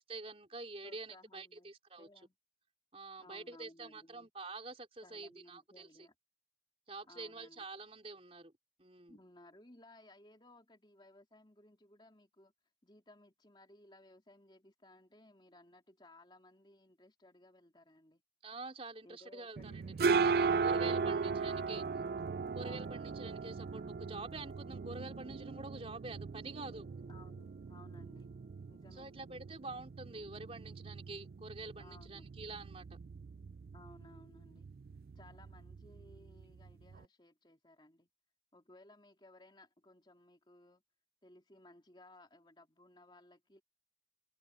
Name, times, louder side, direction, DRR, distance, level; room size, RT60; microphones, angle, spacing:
voice 1, 0.0-2.1 2.9-5.9 6.9-8.5 8.8-9.2 18.4-21.8 22.5-26.9 28.9-32.9, right 3 dB, 35° right, 4.0 m, -47 dB
voice 2, 0.8-1.7 2.0-2.3 3.2-4.3 5.0-6.1 7.1-7.7 9.1-12.5 12.8-18.2 19.0-21.9 22.6-23.0 27.1-28.3 28.7-29.1 31.8-32.3 33.7-34.7 35.1-38.1 38.5-40.8 41.2-43.6, left 1 dB, 25° left, 3.1 m, -60 dB
sound 1, 19.6-37.0, right 5 dB, 55° right, 0.4 m, -38 dB
head